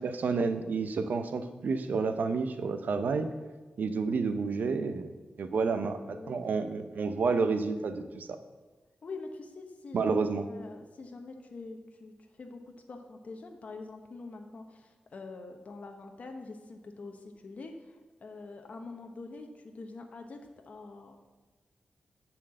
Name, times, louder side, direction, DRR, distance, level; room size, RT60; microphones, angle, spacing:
voice 1, 0.0-3.3 3.8-5.1 5.4-8.4 9.9-10.5, right 4 dB, 75° right, 9 dB, 0.7 m, -30 dB
voice 2, 5.5-6.3 9.0-20.4 20.7-21.2, left 3 dB, 50° left, 4 dB, 0.9 m, -45 dB
10.5 x 4.5 x 7.6 m, 1.3 s
wide cardioid pair, 120°, 3 cm